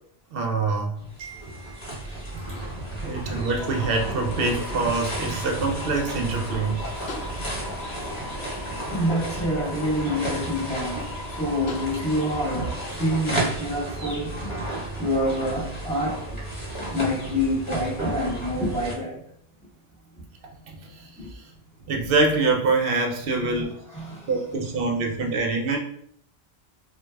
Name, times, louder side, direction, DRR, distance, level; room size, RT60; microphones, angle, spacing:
voice 1, 0.3-2.6 3.0-7.2 20.7-21.4 21.9-23.7 24.3-25.8, right 3 dB, 65° right, 2 dB, 0.8 m, -26 dB
sound 1, 1.0-18.9, right 2 dB, 30° left, 0.9 m, -33 dB
sound 2, 3.6-12.9, left 4 dB, 75° left, 0.8 m, -39 dB
voice 2, 8.9-14.6 15.0-16.4 16.9-19.2 21.2-21.3 23.4-24.3, equal, 5° left, -8 dB, 1.4 m, -27 dB
4.6 x 2.2 x 2.2 m, 0.67 s
omnidirectional pair, 1.1 m